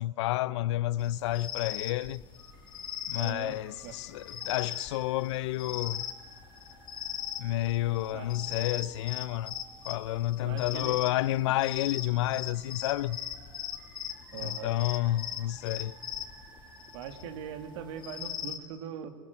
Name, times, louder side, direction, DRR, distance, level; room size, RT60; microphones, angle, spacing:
voice 1, 0.0-2.2 3.1-6.0 7.4-9.5 9.9-13.2 14.4-16.0, left 15 dB, 70° left, 0.6 m, -30 dB
sound 1, 1.0-18.6, left 10 dB, 30° left, 2.3 m, -40 dB
sound 2, 2.3-18.0, right 2 dB, 15° right, 4.6 m, -57 dB
voice 2, 3.2-4.0 8.1-8.3 10.4-11.1 11.4-11.6 14.3-14.7 16.9-19.1, right 8 dB, 70° right, 2.4 m, -41 dB
23.0 x 19.5 x 9.4 m
hypercardioid pair, 115°, 15 cm